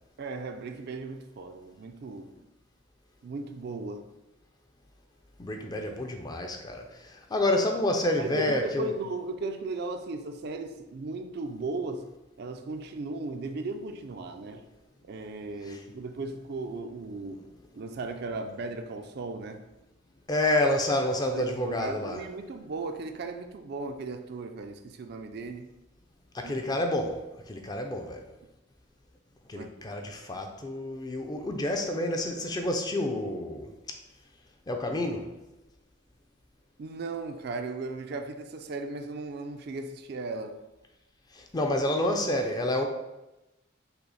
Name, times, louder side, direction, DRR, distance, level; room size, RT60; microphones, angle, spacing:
voice 1, 0.2-2.3 3.2-4.1 8.2-12.1 12.4-14.7 15.1-17.4 17.7-19.6 21.3-25.7 26.4-26.6 29.5-29.7 36.8-40.6, right 3 dB, 55° right, 6 dB, 0.4 m, -36 dB
voice 2, 5.4-8.9 15.6-15.8 20.3-22.2 26.3-28.3 29.5-33.7 34.7-35.3 41.3-42.8, left 1 dB, 20° left, 4 dB, 0.4 m, -29 dB
5.6 x 2.0 x 4.0 m, 0.98 s
head